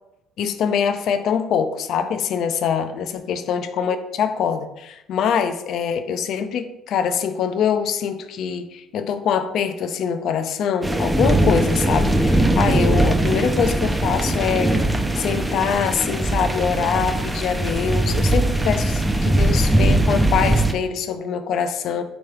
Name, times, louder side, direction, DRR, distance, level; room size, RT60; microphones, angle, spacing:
voice 1, 0.4-14.7 15.2-22.0, left 7 dB, 65° left, 10 dB, 0.3 m, -24 dB
sound 1, 10.8-20.7, right 1 dB, 10° right, 0.4 m, -20 dB
3.5 x 3.0 x 3.1 m, 0.90 s
hypercardioid pair, 65°, 0 cm